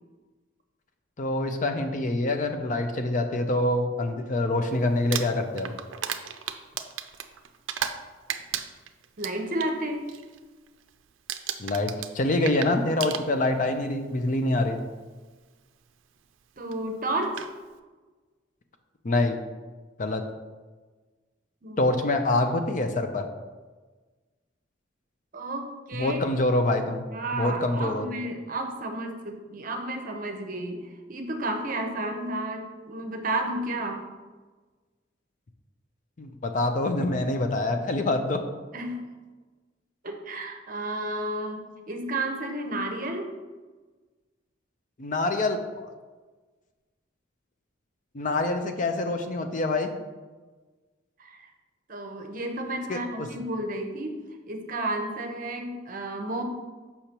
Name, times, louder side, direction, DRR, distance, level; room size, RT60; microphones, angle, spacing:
voice 1, 1.2-5.7 11.6-14.8 19.0-19.4 20.0-20.2 21.8-23.2 25.9-27.0 27.3-28.1 36.2-38.4 45.0-45.9 48.1-49.9 52.9-53.3, left 2 dB, 40° left, 6 dB, 0.5 m, -26 dB
Crumpling crinkling, 4.9-8.0 8.3-9.7 10.1-10.4 10.7-11.0 11.3-13.7 14.6-14.7 16.7-16.8 17.2-17.5, right 9 dB, 80° right, 0.4 m, -34 dB
voice 2, 9.2-10.1 16.6-17.4 21.6-21.9 25.3-26.2 27.1-34.0 38.7-39.1 40.0-43.3 51.2-51.5 51.9-56.4, right 1 dB, 45° right, 4 dB, 0.7 m, -32 dB
6.6 x 5.6 x 2.9 m, 1.3 s
head